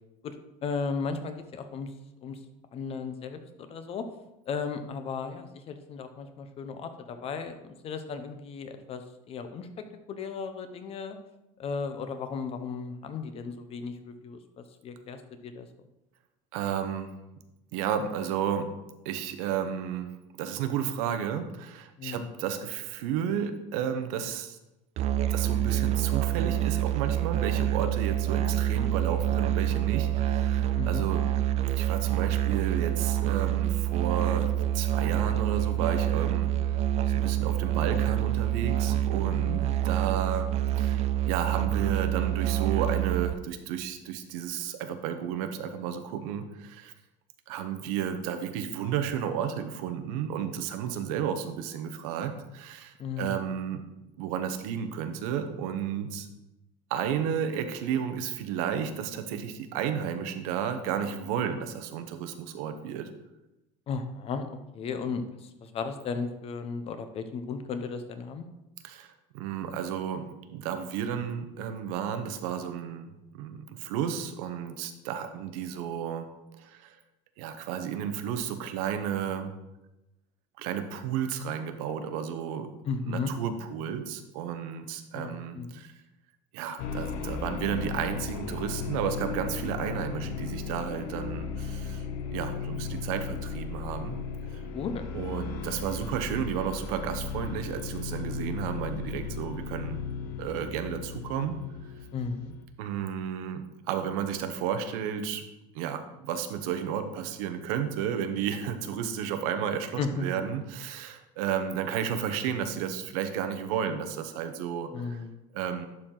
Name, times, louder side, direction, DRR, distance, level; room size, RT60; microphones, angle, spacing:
voice 1, 0.6-1.9 2.2-2.4 2.7-4.1 4.5-9.0 9.3-9.7 10.1-11.2 11.6-15.7 22.0-22.3 28.3-28.5 30.7-31.0 39.3-39.8 53.0-53.3 63.9-64.5 64.7-68.5 82.8-83.3 85.1-85.7 94.7-95.0 102.1-102.5 110.0-110.3 114.9-115.4, left 5 dB, 35° left, 8 dB, 0.7 m, -35 dB
voice 2, 16.5-17.1 17.7-18.7 19.0-20.1 20.4-24.6 25.3-31.2 31.7-36.7 37.1-40.5 40.8-46.9 47.5-53.8 54.2-56.3 56.9-63.1 68.8-76.3 76.5-76.9 77.4-79.5 80.6-82.7 83.1-85.9 86.5-92.0 92.3-94.2 95.1-100.0 100.4-101.6 102.8-105.4 105.7-115.2 115.5-115.9, right 8 dB, 85° right, 8 dB, 0.9 m, -32 dB
Musical instrument, 25.0-43.3, right 12 dB, 40° right, 0.4 m, -27 dB
sound 1, 86.8-102.7, left 5 dB, 70° left, 0.9 m, -36 dB
11.0 x 4.5 x 3.8 m, 0.96 s
cardioid pair, 155°, 18 cm